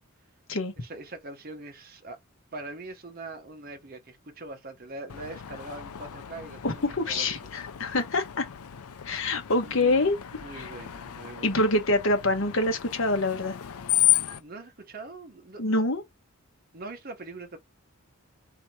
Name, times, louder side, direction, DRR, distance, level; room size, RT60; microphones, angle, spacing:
voice 1, 0.8-2.2 2.5-7.3 9.6-10.1 10.3-11.6 14.4-15.8 16.7-17.6, right 2 dB, 40° right, 1.0 m, -42 dB
Screech, 5.1-14.4, left 15 dB, 90° left, 0.5 m, -32 dB
voice 2, 6.6-8.5 9.0-10.2 10.5-10.7 11.4-13.6 15.6-16.0, left 2 dB, 60° left, 1.3 m, -25 dB
4.0 x 2.9 x 4.6 m
head